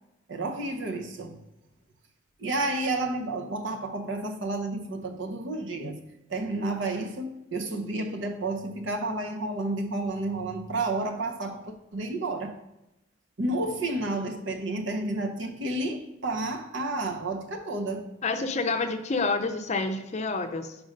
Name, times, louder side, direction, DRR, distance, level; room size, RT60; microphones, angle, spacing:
voice 1, 0.3-1.4 2.4-6.0 6.3-12.6 13.4-18.1, right 2 dB, 65° right, 0.8 m, -31 dB
voice 2, 18.2-20.8, left 3 dB, 35° left, 0.5 m, -28 dB
5.3 x 4.7 x 5.2 m
head